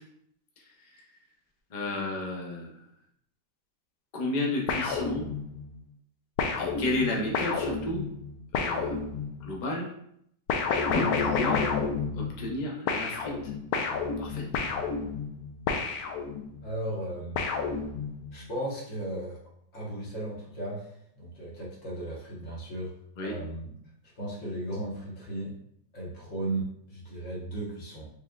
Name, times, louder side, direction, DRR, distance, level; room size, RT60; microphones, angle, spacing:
voice 1, 1.7-2.7 4.1-5.3 6.6-8.0 8.5-9.0 9.4-9.9 10.9-11.7 12.2-13.3 14.2-14.4 23.2-23.3, left 2 dB, 90° left, -1 dB, 0.4 m, -32 dB
sound 1, 4.7-5.7 6.4-9.5 10.5-12.6 12.9-16.6 17.3-18.3, left 5 dB, 70° left, 0.9 m, -30 dB
voice 2, 16.6-17.5 18.3-19.4 19.7-22.9 23.2-23.7 24.2-25.6 25.9-28.1, right 1 dB, 45° left, -4 dB, 1.5 m, -36 dB
5.1 x 3.1 x 2.4 m, 0.70 s
omnidirectional pair, 2.0 m